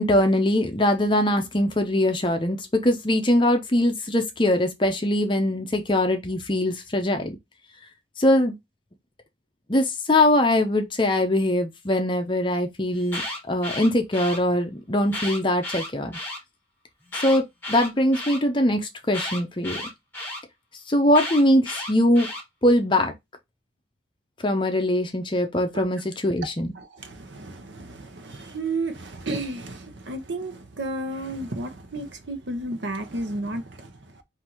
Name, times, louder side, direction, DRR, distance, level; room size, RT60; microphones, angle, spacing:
voice 1, 0.0-7.4 8.2-8.5 9.7-13.2 13.5-16.2 17.2-19.8 20.9-22.3 22.6-23.1 24.4-26.7, left 1 dB, 25° left, 0.7 m, -22 dB
Alarm, 12.9-14.4 15.0-16.4 17.1-18.4 19.1-20.4 21.1-22.4, left 1 dB, 10° left, 1.8 m, -33 dB
voice 2, 26.8-34.2, right 2 dB, 75° right, 0.9 m, -32 dB
3.8 x 2.7 x 4.4 m
head